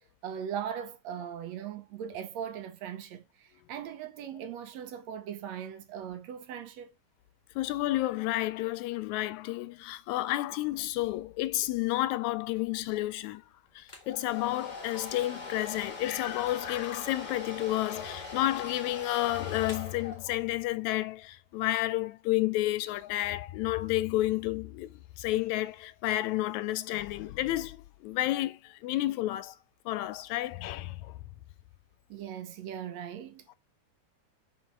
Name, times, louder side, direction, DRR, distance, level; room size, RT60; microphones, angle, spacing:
voice 1, 0.2-6.9 32.1-33.5, right 9 dB, 70° right, 2.0 m, -39 dB
voice 2, 7.6-13.4 13.8-29.6 29.9-31.1 33.5-33.6, left 16 dB, 80° left, 1.8 m, -31 dB
Domestic sounds home sounds, 13.9-20.6, left 3 dB, 60° left, 0.4 m, -42 dB
5.8 x 5.7 x 4.6 m
omnidirectional pair, 3.4 m